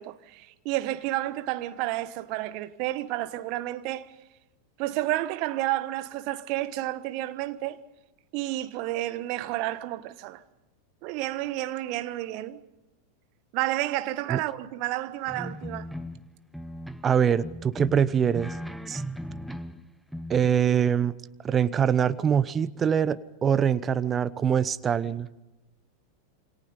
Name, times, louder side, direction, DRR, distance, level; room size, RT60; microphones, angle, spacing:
voice 1, 0.0-4.1 4.8-7.8 8.3-10.4 11.0-12.6 13.5-15.9, right 16 dB, 45° right, 1.4 m, -30 dB
sound 1, 15.3-16.3 16.5-17.1 17.4-19.8 20.1-20.5, equal, ahead, 1.1 m, -37 dB
voice 2, 17.0-18.6 18.9-19.0 20.3-21.1 21.4-25.3, right 8 dB, 20° right, 0.9 m, -24 dB
28.0 x 25.5 x 5.4 m
figure-of-eight pair, 90°, 0 cm